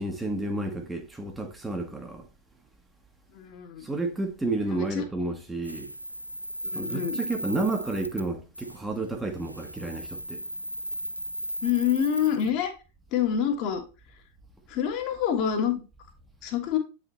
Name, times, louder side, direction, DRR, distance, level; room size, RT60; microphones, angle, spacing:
voice 1, 0.0-2.3 3.8-5.9 6.7-10.4, right 2 dB, 10° right, 1.1 m, -31 dB
voice 2, 3.3-3.9 4.6-5.0 6.7-7.2 11.6-12.7 13.1-13.8 14.7-15.7 16.4-16.8, left 9 dB, 40° left, 1.5 m, -27 dB
sound 1, 5.6-8.3 8.6-8.8 9.4-12.5, equal, 90° right, 0.3 m, -36 dB
8.5 x 4.9 x 3.0 m
figure-of-eight pair, 90°, 0 cm